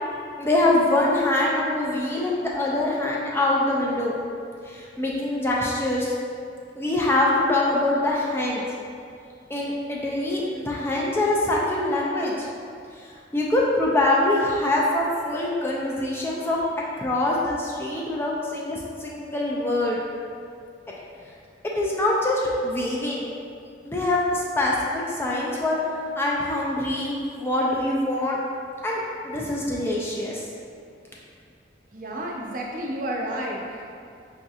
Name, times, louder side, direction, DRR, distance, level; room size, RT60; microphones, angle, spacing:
voice 1, 0.4-4.2 4.6-6.1 6.8-8.7 9.5-12.5 12.9-16.6 17.0-20.0 20.9-21.0 21.8-23.3 23.8-25.8 26.2-28.4 28.8-30.5, left 1 dB, 15° left, -4 dB, 0.3 m, -24 dB
voice 2, 31.9-33.9, right 1 dB, 50° right, -2 dB, 0.5 m, -31 dB
5.7 x 2.7 x 2.4 m, 2.4 s
head